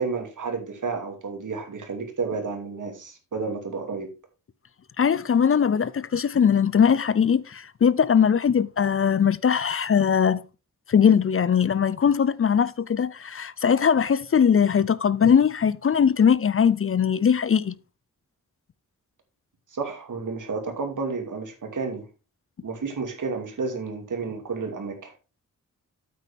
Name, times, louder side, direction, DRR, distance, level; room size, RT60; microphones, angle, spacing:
voice 1, 0.0-4.1 19.7-22.1 22.6-25.1, right 4 dB, 75° right, 2.6 m, -31 dB
voice 2, 5.0-10.4 10.9-17.8, left 7 dB, 45° left, 0.5 m, -20 dB
8.6 x 8.5 x 3.5 m
cardioid pair, 75°, 31 cm